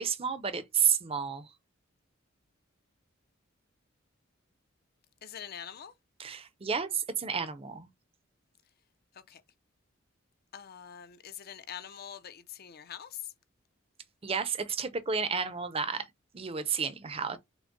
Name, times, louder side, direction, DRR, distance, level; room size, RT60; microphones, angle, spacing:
voice 1, 0.0-1.5 6.2-7.9 14.2-16.1 16.3-17.4, right 6 dB, 30° right, 0.5 m, -31 dB
voice 2, 5.2-5.9 9.3-9.4 10.5-13.2, left 9 dB, 50° left, 0.5 m, -44 dB
6.0 x 2.1 x 3.8 m
head